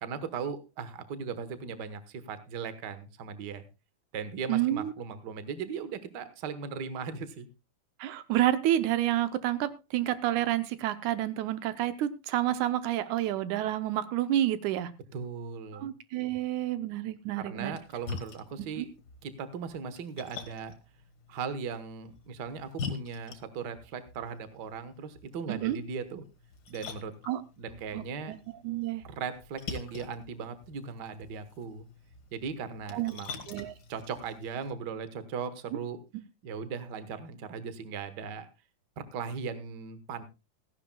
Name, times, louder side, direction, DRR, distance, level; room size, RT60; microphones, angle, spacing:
voice 1, 0.0-3.6 4.1-7.5 15.1-15.9 17.3-18.9 19.2-20.7 21.3-26.2 26.7-27.1 27.6-28.3 29.0-31.8 32.3-33.4 33.9-36.0 36.4-38.5 39.0-40.2, right 6 dB, 60° right, 12 dB, 1.1 m, -38 dB
voice 2, 4.5-4.9 8.0-15.0 15.7-17.8 18.8-18.9 25.5-25.8 27.3-27.4 27.9-28.4 28.6-29.0 32.9-33.2 33.5-33.7, right 13 dB, 75° right, 12 dB, 2.1 m, -29 dB
Splash splatter, 17.6-34.7, left 5 dB, 45° left, 1.5 m, -46 dB
16.5 x 14.5 x 2.2 m, 0.26 s
omnidirectional pair, 3.5 m